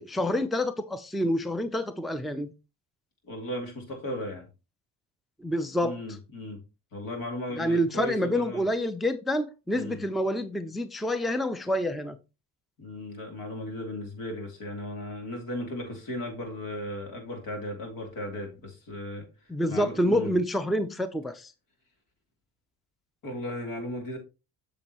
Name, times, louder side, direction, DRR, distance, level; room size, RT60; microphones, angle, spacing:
voice 1, 0.0-2.5 5.4-6.0 7.6-12.2 19.5-21.5, equal, ahead, 0.6 m, -27 dB
voice 2, 3.2-4.5 5.8-6.6 6.9-8.6 9.7-10.0 12.8-19.3 19.7-20.3 23.2-24.2, left 1 dB, 65° left, 3.2 m, -36 dB
7.2 x 6.9 x 3.0 m
supercardioid pair, 75°, 37 cm